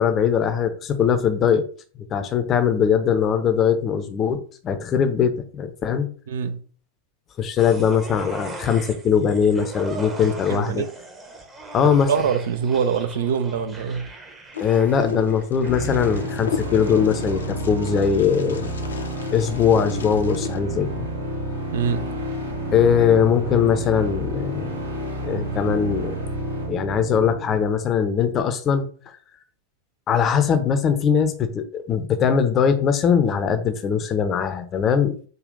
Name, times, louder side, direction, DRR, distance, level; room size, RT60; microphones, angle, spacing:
voice 1, 0.0-1.6 2.1-6.1 7.4-10.8 11.7-12.1 14.6-18.7 19.3-21.1 22.7-24.8 25.2-26.2 26.7-28.9 30.1-35.3, left 7 dB, 30° left, 0.6 m, -21 dB
voice 2, 6.3-6.6 10.5-10.9 12.1-14.1 21.7-22.1, right 7 dB, 60° right, 0.4 m, -24 dB
sound 1, 7.6-19.1 19.4-19.5, right 2 dB, 15° right, 0.9 m, -40 dB
Wind, 14.5-20.6, left 6 dB, 70° left, 0.5 m, -36 dB
sound 2, 15.6-27.6, right 1 dB, 85° right, 1.9 m, -29 dB
5.1 x 2.4 x 3.8 m
figure-of-eight pair, 90°, 0 cm